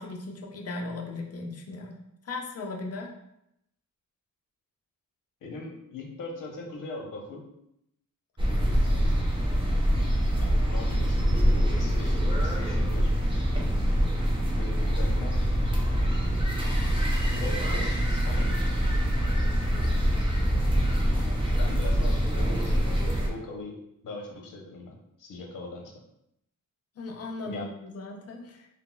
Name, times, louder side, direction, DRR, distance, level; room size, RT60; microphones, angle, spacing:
voice 1, 0.0-1.9 2.2-3.1 8.4-8.9 19.7-20.5 27.0-28.7, left 2 dB, 50° left, 1 dB, 0.4 m, -38 dB
voice 2, 5.4-7.4 10.4-13.1 14.6-15.7 17.3-18.7 21.6-23.8 24.0-25.9 27.5-27.7, left 3 dB, 70° left, 0 dB, 0.7 m, -40 dB
sound 1, 8.4-23.3, equal, 15° right, 0.4 m, -25 dB
3.9 x 2.0 x 2.2 m, 0.80 s
wide cardioid pair, 150°, 33 cm